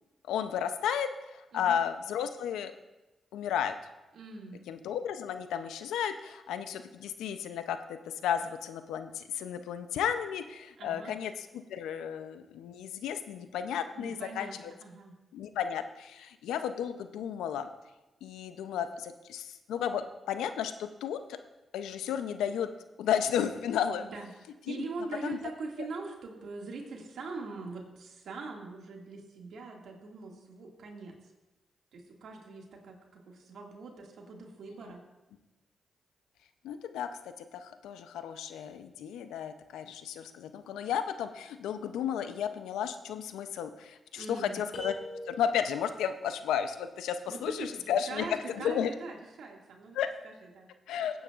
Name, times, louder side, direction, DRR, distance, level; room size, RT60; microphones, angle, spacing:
voice 1, 0.3-2.7 3.3-3.7 4.7-14.7 15.3-17.7 18.2-21.4 21.7-22.7 23.0-24.1 24.7-24.8 25.2-25.4 36.6-37.1 37.4-44.9 45.3-48.9 49.9-50.1 50.9-51.2, left 8 dB, 90° left, 9 dB, 0.6 m, -33 dB
voice 2, 4.1-4.6 10.8-11.1 14.0-15.2 24.0-24.3 24.7-31.1 31.9-35.0 44.2-44.6 47.3-47.7 48.1-50.0 50.2-50.7, right 3 dB, 75° right, 0 dB, 2.1 m, -42 dB
sound 1, 44.7-45.9, equal, 70° left, 2.5 m, -42 dB
16.5 x 9.3 x 2.5 m, 1.0 s
supercardioid pair, 45°, 0 cm